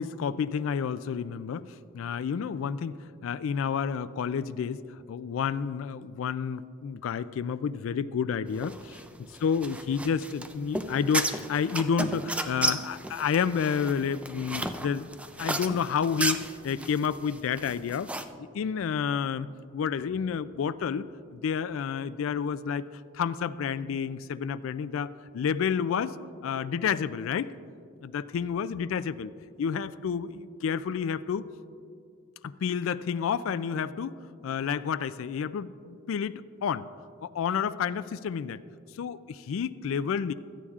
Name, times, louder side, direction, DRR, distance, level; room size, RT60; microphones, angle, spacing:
voice 1, 0.0-4.8 5.1-9.0 9.4-15.1 15.4-18.1 18.4-19.5 19.7-21.1 21.3-22.8 23.1-26.2 26.4-27.5 28.0-29.3 29.6-31.5 32.4-36.9 37.2-38.6 38.9-40.3, left 7 dB, 80° left, 15 dB, 0.3 m, -30 dB
sound 1, 8.6-18.2, right 1 dB, 5° right, 0.4 m, -33 dB
17.0 x 12.5 x 2.4 m, 2.5 s
head